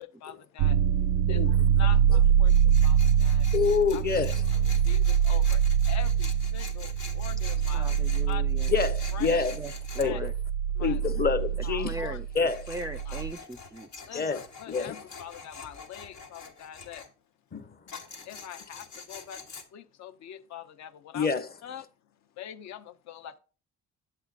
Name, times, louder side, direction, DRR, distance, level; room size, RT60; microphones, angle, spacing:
voice 1, 0.0-3.5 3.9-4.2 4.5-7.9 8.2-8.5 9.1-9.4 10.0-10.2 10.7-11.0 11.6-12.2 13.1-13.2 14.1-17.0 18.2-21.3 21.6-21.9 22.3-23.4, left 10 dB, 70° left, 0.8 m, -44 dB
sound 1, 0.6-13.3, right 8 dB, 85° right, 0.5 m, -24 dB
Tools, 2.5-10.1 12.3-17.1 17.9-19.6, left 4 dB, 90° left, 1.5 m, -46 dB
voice 2, 3.5-4.3 8.7-9.6 10.0-10.3 10.8-12.0 12.3-12.7 14.1-15.0 17.5-17.8 21.1-21.5, left 5 dB, 30° left, 0.8 m, -27 dB
voice 3, 7.7-8.7 9.5-10.3 11.8-12.3 12.7-14.3, right 2 dB, 10° right, 0.4 m, -39 dB
8.3 x 7.9 x 2.4 m
cardioid pair, 95°, 29 cm